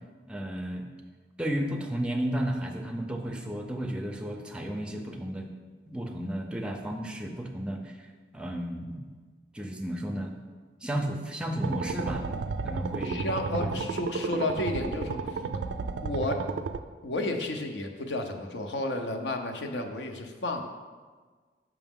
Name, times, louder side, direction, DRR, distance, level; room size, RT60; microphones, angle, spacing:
voice 1, 0.3-0.9 1.4-5.5 5.9-7.8 8.3-9.1 9.5-10.3 10.8-12.3 12.6-13.2 13.6-13.7, right 1 dB, 5° right, 2 dB, 0.5 m, -33 dB
sound 1, 11.6-16.8, right 4 dB, 80° right, 0.3 m, -32 dB
voice 2, 13.0-15.2 16.0-16.5 17.0-20.6, left 1 dB, 85° left, 4 dB, 0.7 m, -32 dB
6.1 x 5.9 x 3.6 m, 1.4 s
head